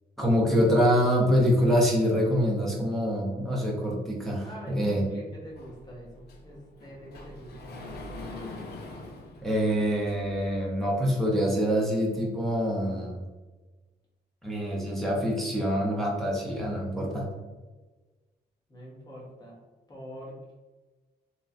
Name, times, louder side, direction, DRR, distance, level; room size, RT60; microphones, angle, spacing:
voice 1, 0.2-5.0 9.4-13.2 14.4-17.3, equal, ahead, -4 dB, 0.7 m, -25 dB
voice 2, 4.4-8.0 18.7-19.6 19.9-20.5, equal, 20° left, -4 dB, 1.2 m, -45 dB
Sliding door, 5.6-10.5, left 2 dB, 65° left, 0.6 m, -43 dB
3.0 x 2.3 x 2.6 m, 1.2 s
cardioid pair, 80°, 18 cm